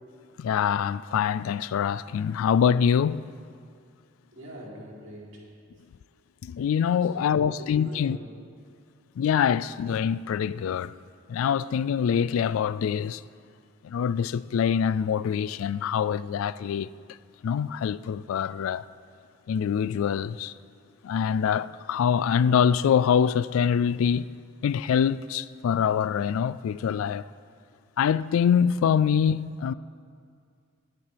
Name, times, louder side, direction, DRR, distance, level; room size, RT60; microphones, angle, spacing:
voice 1, 0.4-3.2 6.4-8.2 9.2-10.9 11.3-13.2 13.8-16.9 17.4-18.8 19.5-20.5 21.0-24.3 24.6-27.2 28.0-29.7, left 7 dB, 85° left, 0.3 m, -24 dB
voice 2, 4.3-5.4 7.0-8.2, equal, 65° right, 3.3 m, -43 dB
19.5 x 9.8 x 3.4 m
head